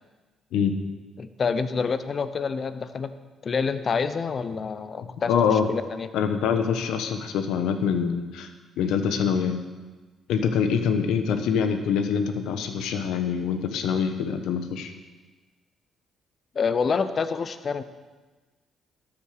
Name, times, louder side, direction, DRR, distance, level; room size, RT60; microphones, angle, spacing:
voice 1, 1.2-3.1 3.4-6.1 16.5-17.8, left 5 dB, 45° left, 12 dB, 0.8 m, -27 dB
voice 2, 5.3-5.7 6.1-8.5 8.8-9.6 10.3-14.9, left 7 dB, 90° left, 8 dB, 1.1 m, -25 dB
12.5 x 7.2 x 6.6 m, 1.3 s
cardioid pair, 90°, 0 cm